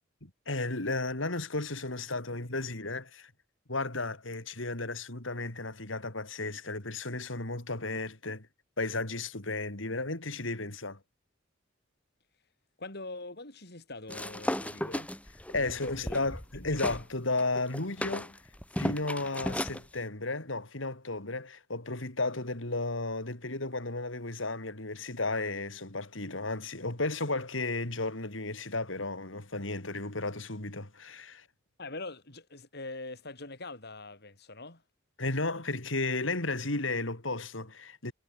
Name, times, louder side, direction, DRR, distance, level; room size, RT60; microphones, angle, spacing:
voice 1, 0.2-3.3 3.7-8.5 8.8-11.0 15.5-18.3 18.8-31.5 35.2-38.1, left 2 dB, 75° left, 3.8 m, -34 dB
voice 2, 12.8-15.1 15.6-16.2 16.5-16.8 31.8-34.8, left 2 dB, 55° left, 6.0 m, -43 dB
sound 1, 14.1-17.0 17.4-19.8, left 1 dB, 5° left, 4.5 m, -35 dB
head